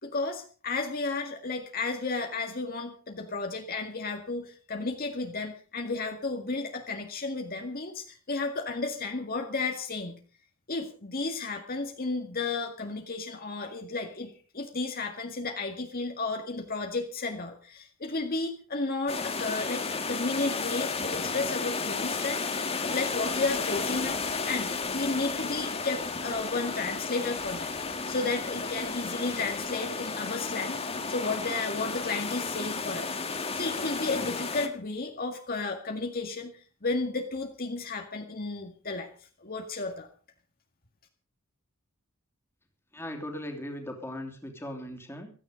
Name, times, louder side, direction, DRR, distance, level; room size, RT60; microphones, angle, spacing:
voice 1, 0.0-10.2 10.7-24.2 24.5-27.7 28.1-30.8 31.1-33.2 33.5-36.5 36.8-39.1 39.4-40.1, left 3 dB, 45° left, 3 dB, 2.0 m, -33 dB
sound 1, 19.1-34.7, left 4 dB, 25° left, 1.8 m, -33 dB
sound 2, 22.8-29.6, right 2 dB, 60° right, 4.4 m, -50 dB
voice 2, 42.9-45.3, left 1 dB, 10° left, 3 dB, 3.1 m, -38 dB
16.0 x 14.0 x 5.2 m, 0.39 s
head